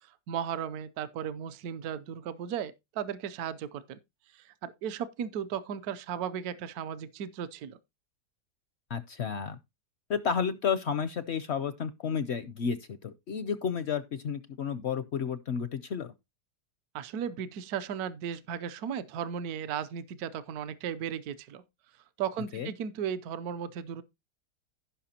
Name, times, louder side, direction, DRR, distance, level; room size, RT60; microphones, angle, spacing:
voice 1, 0.3-4.0 4.3-7.8 16.9-21.6 22.2-24.0, right 8 dB, 70° right, 1.2 m, -36 dB
voice 2, 8.9-9.6 10.1-16.1 22.5-22.7, left 6 dB, 60° left, 0.7 m, -32 dB
16.0 x 5.6 x 2.8 m
omnidirectional pair, 1.7 m